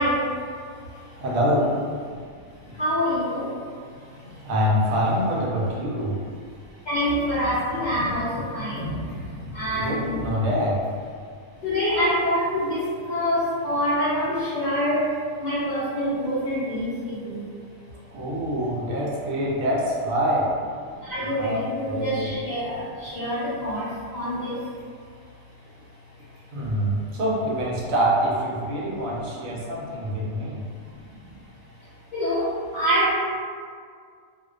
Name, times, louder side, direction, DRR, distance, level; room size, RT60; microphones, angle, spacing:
voice 1, 0.0-1.2 2.6-3.6 3.9-4.5 6.5-6.6 6.8-10.2 11.5-17.5 21.0-24.7 28.8-28.9 29.6-29.7 30.7-31.4 32.1-33.1, equal, 90° left, -11 dB, 0.4 m, -26 dB
voice 2, 1.2-1.8 4.4-6.2 9.7-10.8 18.1-20.5 21.3-22.3 26.5-30.6, equal, 75° right, -4 dB, 1.0 m, -25 dB
2.4 x 2.1 x 2.3 m, 2.1 s
omnidirectional pair, 1.5 m